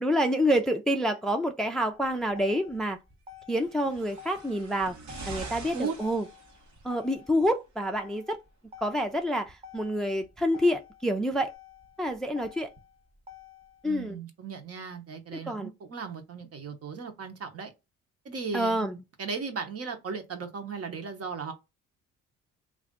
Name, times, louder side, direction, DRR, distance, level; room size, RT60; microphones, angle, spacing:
voice 1, 0.0-3.0 3.5-5.0 5.3-6.3 6.8-8.4 8.8-11.5 12.0-12.7 13.8-14.2 15.5-15.7 18.5-19.0, equal, ahead, 0.4 m, -27 dB
Motor vehicle (road), 1.9-13.9, left 7 dB, 20° right, 0.8 m, -51 dB
sound 1, 3.6-7.0 7.9-8.0, right 3 dB, 80° right, 1.2 m, -44 dB
voice 2, 13.8-17.7 18.2-21.5, right 5 dB, 50° right, 1.0 m, -36 dB
3.1 x 2.6 x 3.6 m
cardioid pair, 90°, 30 cm